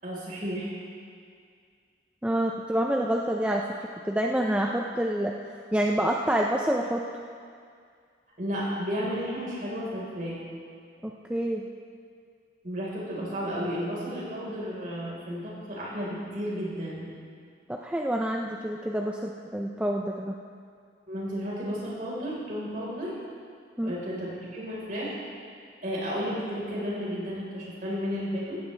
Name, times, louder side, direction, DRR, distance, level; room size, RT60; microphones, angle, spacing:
voice 1, 0.0-0.8 8.4-10.4 12.6-17.1 21.1-23.1 23.8-25.1 25.8-28.6, equal, 45° right, -6 dB, 4.4 m, -33 dB
voice 2, 2.2-3.7 4.0-5.4 5.7-7.0 11.0-11.7 17.7-20.3 23.8-24.0, right 1 dB, 5° right, 0 dB, 0.5 m, -27 dB
16.0 x 15.5 x 3.4 m, 2.2 s
head